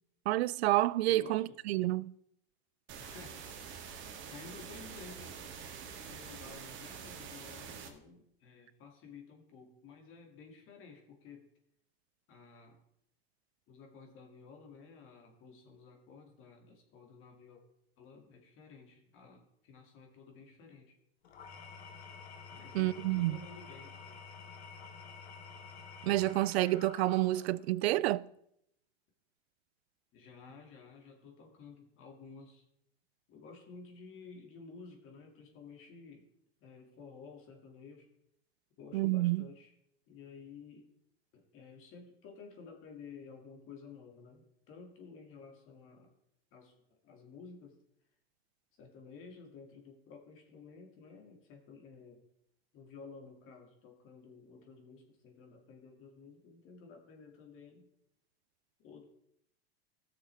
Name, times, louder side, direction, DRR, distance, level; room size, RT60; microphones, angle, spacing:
voice 1, 0.3-2.1 22.7-23.4 26.0-28.3 38.9-39.4, right 17 dB, 80° right, 0.5 m, -29 dB
voice 2, 1.1-1.6 3.0-3.9 4.3-5.6 6.1-11.5 12.3-12.8 13.7-17.6 18.0-21.0 22.5-24.2 30.1-32.6 33.3-36.3 36.6-38.1 38.8-39.7 40.1-40.9 41.3-46.1 46.5-46.7 47.0-47.8 48.8-52.2 52.7-57.9 58.8-59.0, left 5 dB, 40° left, 2.3 m, -53 dB
sound 1, 2.9-7.9, right 6 dB, 40° right, 1.7 m, -46 dB
Engine / Tools, 21.2-27.7, left 5 dB, 90° left, 1.6 m, -50 dB
17.0 x 6.6 x 3.4 m
supercardioid pair, 120°, 31 cm